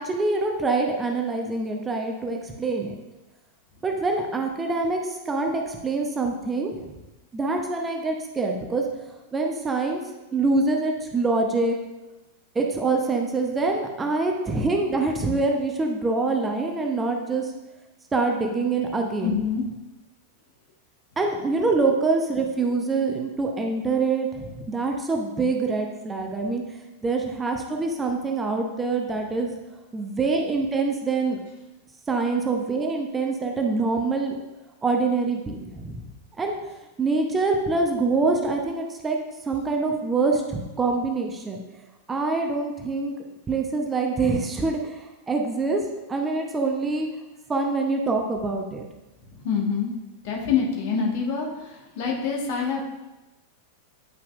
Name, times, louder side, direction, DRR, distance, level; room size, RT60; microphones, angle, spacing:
voice 1, 0.0-2.9 3.8-6.9 7.3-8.8 9.3-10.0 10.3-11.8 12.5-17.5 18.1-19.4 21.2-26.6 27.0-29.5 29.9-31.4 32.1-34.4 34.8-36.0 36.4-36.5 37.0-39.2 39.5-41.6 42.1-43.1 43.5-45.8 46.1-47.1 47.5-48.8, right 3 dB, 15° right, 2 dB, 0.8 m, -25 dB
voice 2, 19.2-19.6 49.3-49.9 50.2-52.8, left 6 dB, 50° left, -1 dB, 1.5 m, -26 dB
9.1 x 5.7 x 2.5 m, 1.1 s
figure-of-eight pair, 90°, 0 cm